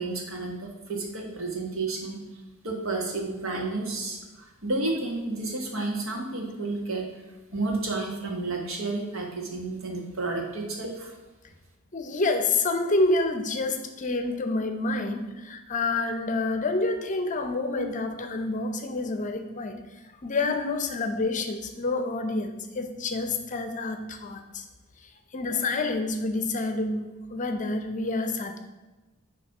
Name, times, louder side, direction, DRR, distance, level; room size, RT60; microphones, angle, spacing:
voice 1, 0.0-2.2 2.6-7.1 7.5-11.2, right 2 dB, 70° right, 1 dB, 1.5 m, -31 dB
voice 2, 11.9-19.8 20.2-24.6 25.3-28.6, left 3 dB, 35° left, 7 dB, 0.6 m, -28 dB
9.6 x 3.2 x 5.3 m, 1.2 s
head